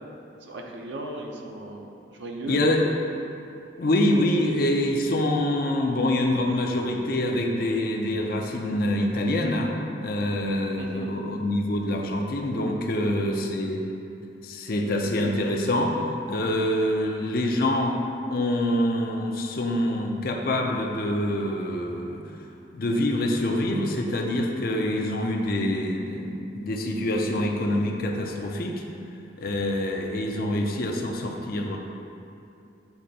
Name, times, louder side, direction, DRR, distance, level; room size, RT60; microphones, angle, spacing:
voice 1, 0.4-2.7 10.8-11.1 12.9-13.2, right 2 dB, 70° right, 1 dB, 0.7 m, -37 dB
voice 2, 2.5-2.8 3.8-9.8 10.0-13.8 14.4-16.0 16.3-18.0 18.3-22.2 22.7-28.8 29.4-31.8, left 1 dB, 50° left, 2 dB, 0.5 m, -25 dB
8.0 x 3.3 x 4.0 m, 2.6 s
head